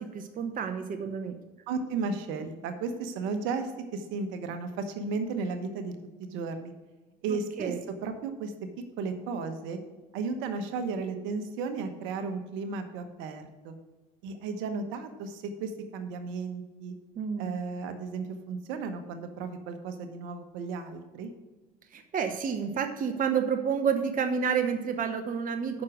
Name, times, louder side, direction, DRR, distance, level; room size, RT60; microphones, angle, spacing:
voice 1, 0.0-1.4 7.3-7.8 17.2-17.6 21.9-25.8, right 7 dB, 40° right, 7 dB, 0.9 m, -30 dB
voice 2, 1.7-5.9 6.2-6.7 7.2-8.5 9.0-9.8 10.1-13.7 14.2-16.9 17.4-21.3, right 4 dB, 70° right, 8 dB, 1.1 m, -34 dB
8.7 x 6.1 x 6.2 m, 1.2 s
hypercardioid pair, 70°, 21 cm